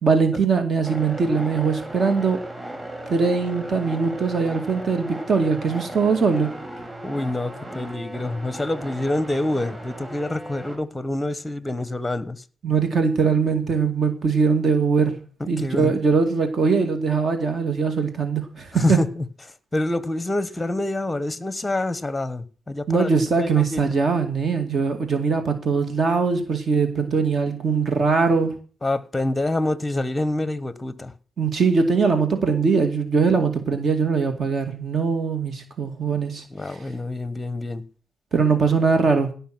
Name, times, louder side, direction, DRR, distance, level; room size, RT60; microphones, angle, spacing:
voice 1, 0.0-2.4 3.1-6.5 12.6-15.2 15.5-19.0 22.9-28.5 31.4-36.8 38.3-39.3, right 5 dB, 45° right, 2.2 m, -21 dB
sound 1, 0.8-10.8, right 1 dB, 15° right, 4.1 m, -36 dB
voice 2, 7.0-12.4 15.4-15.9 18.7-19.2 19.7-23.8 28.8-31.1 36.5-37.8, left 1 dB, 10° left, 1.0 m, -26 dB
17.0 x 5.8 x 6.0 m
cardioid pair, 90°, 0 cm